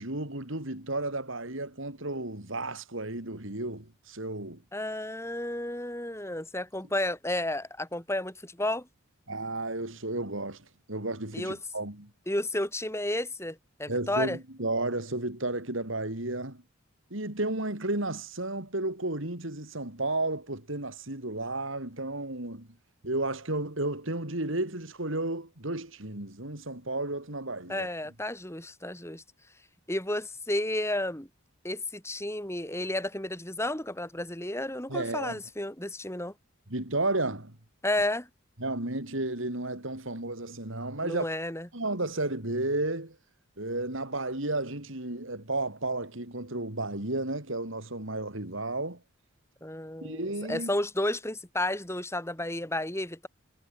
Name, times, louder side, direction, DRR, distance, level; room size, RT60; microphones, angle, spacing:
voice 1, 0.0-4.6 9.3-12.1 13.9-16.6 17.1-22.7 23.0-27.9 34.9-35.4 36.7-37.6 38.6-41.3 41.7-43.2 43.6-49.0 50.0-50.7, right 2 dB, 65° right, 3.7 m, -33 dB
voice 2, 4.7-8.9 11.3-11.6 12.3-14.4 27.7-29.2 29.9-31.3 31.6-36.3 37.8-38.3 41.0-41.7 49.6-53.3, left 1 dB, 10° left, 5.7 m, -32 dB
head